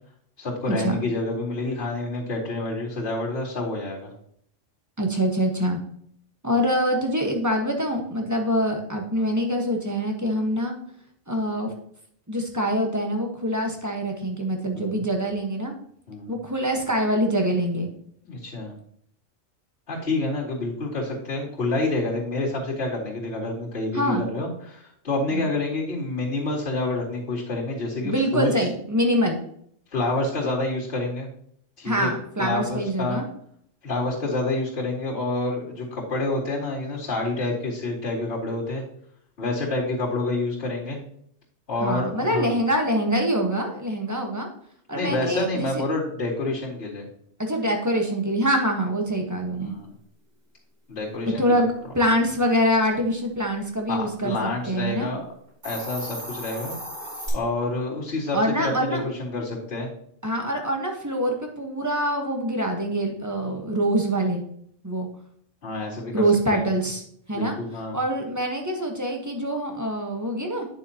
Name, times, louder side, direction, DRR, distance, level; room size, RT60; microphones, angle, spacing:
voice 1, 0.4-4.1 14.7-15.0 16.1-16.4 18.2-18.8 19.9-28.5 29.9-31.3 31.8-32.1 32.4-33.2 33.8-38.8 39.4-41.0 41.7-42.5 44.9-47.1 49.6-49.9 50.9-51.6 53.9-55.2 55.6-56.7 57.3-59.9 65.6-66.2 66.5-66.6 67.3-68.0, left 2 dB, 50° left, -11 dB, 3.0 m, -28 dB
voice 2, 5.0-5.8 6.4-10.8 11.3-11.7 12.3-15.7 16.3-17.9 23.9-24.3 25.3-25.5 28.0-29.4 31.8-33.2 41.8-44.5 44.9-45.8 47.4-49.7 51.3-54.4 54.7-55.1 58.3-59.0 60.2-64.4 64.8-65.1 66.1-67.0 67.3-67.6 67.9-70.7, equal, 15° right, 2 dB, 1.2 m, -24 dB
Hiss, 55.5-57.3, equal, 35° right, 3.2 m, -35 dB
9.3 x 7.0 x 2.9 m, 0.66 s
omnidirectional pair, 1.3 m